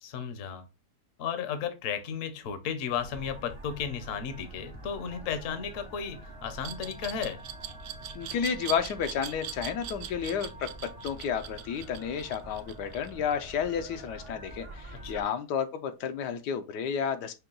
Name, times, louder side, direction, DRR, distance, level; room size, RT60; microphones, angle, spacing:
voice 1, 0.0-0.7 1.2-7.4 15.0-15.3, left 7 dB, 60° left, 1.0 m, -34 dB
sound 1, 2.9-15.2, right 1 dB, 45° right, 0.4 m, -46 dB
Glass, 6.6-13.5, right 11 dB, 75° right, 1.0 m, -41 dB
voice 2, 8.1-10.7 11.0-17.3, left 7 dB, 80° left, 1.2 m, -31 dB
5.6 x 2.2 x 3.7 m
omnidirectional pair, 1.8 m